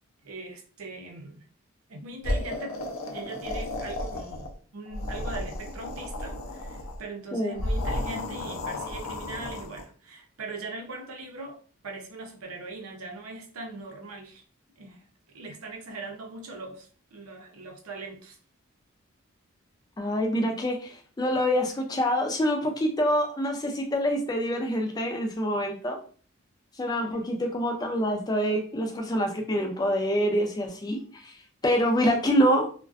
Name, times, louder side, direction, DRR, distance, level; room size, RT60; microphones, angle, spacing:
voice 1, 0.2-1.4 1.9-2.8 3.1-14.4 14.8-15.0 15.3-18.4 26.9-27.1, right 3 dB, 85° right, 2 dB, 0.6 m, -40 dB
sound 1, 2.2-4.5 4.9-7.0 7.5-9.8, left 1 dB, 75° left, 0.5 m, -33 dB
voice 2, 20.0-26.0 26.8-31.4 31.6-32.7, equal, 20° left, 3 dB, 0.3 m, -26 dB
2.4 x 2.2 x 2.4 m, 0.42 s
head